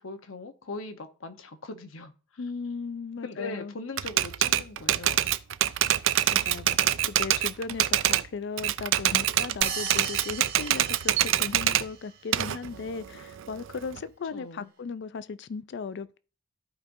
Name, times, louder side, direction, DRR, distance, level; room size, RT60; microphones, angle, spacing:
voice 1, 0.0-2.1 3.2-5.2 14.3-14.7, left 3 dB, 85° left, 1.0 m, -40 dB
voice 2, 2.4-3.7 6.3-16.2, left 5 dB, 60° left, 0.4 m, -37 dB
Typewriter, 4.0-8.3 8.6-11.9 12.3-14.0, right 12 dB, 70° right, 0.4 m, -25 dB
sound 1, 9.6-11.9, right 6 dB, 50° right, 2.1 m, -37 dB
14.0 x 5.1 x 2.6 m
head